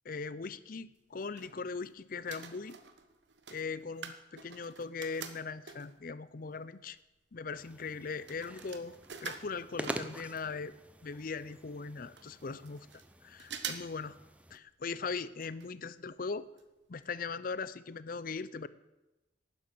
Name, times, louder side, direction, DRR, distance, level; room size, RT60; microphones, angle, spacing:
voice 1, 0.1-2.8 3.5-7.0 7.3-10.7 11.0-12.9 13.2-14.2 14.5-16.5 16.9-18.7, left 4 dB, 50° left, 17 dB, 0.6 m, -40 dB
sound 1, 1.0-1.9 2.2-6.1 6.7-6.8 7.0-10.6 10.9-11.0 11.1-11.2 11.8-11.9 12.2-13.1 13.4-14.0 14.3-14.4 15.4-15.7 16.0-16.1 16.6-16.7 17.0-17.1, right 7 dB, 75° right, 1.2 m, -46 dB
sound 2, 7.6-14.6, right 1 dB, 5° right, 0.7 m, -47 dB
11.5 x 9.8 x 6.7 m, 1.0 s
head